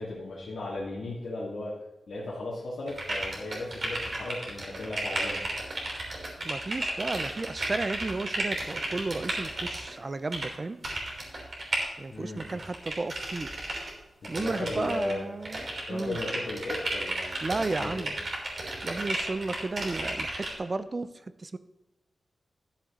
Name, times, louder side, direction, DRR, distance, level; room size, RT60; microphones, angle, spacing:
voice 1, 0.0-1.7 2.1-5.5 12.1-12.6 14.2-15.3 15.8-18.1, left 2 dB, 75° left, -7 dB, 2.1 m, -36 dB
sound 1, 2.9-9.9 10.3-10.5 10.8-11.8 12.4-13.9 14.2-15.1 15.4-20.5, right 2 dB, 45° right, 3.3 m, -33 dB
voice 2, 6.4-10.8 12.0-13.5 14.3-16.2 17.4-18.2 18.8-21.1 21.4-21.6, right 3 dB, 30° right, 13 dB, 0.4 m, -33 dB
11.5 x 7.5 x 3.7 m, 1.0 s
wide cardioid pair, 165°, 0 cm